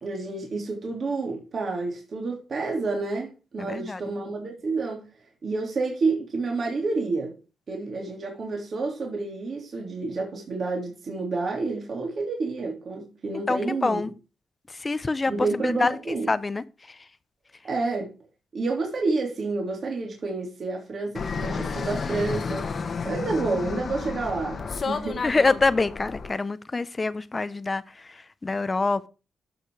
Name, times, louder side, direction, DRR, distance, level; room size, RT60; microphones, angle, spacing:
voice 1, 0.0-5.1 5.4-7.3 7.7-14.0 15.3-16.3 17.6-18.1 18.5-22.7 23.0-25.2, right 3 dB, 55° right, 3.2 m, -29 dB
voice 2, 3.6-4.0 13.5-14.1 14.7-17.1 25.2-29.1, left 3 dB, 30° left, 0.9 m, -26 dB
Fixed-wing aircraft airplane, 21.1-26.3, left 5 dB, 50° left, 1.5 m, -31 dB
12.5 x 6.1 x 4.8 m
cardioid pair, 80°, 0 cm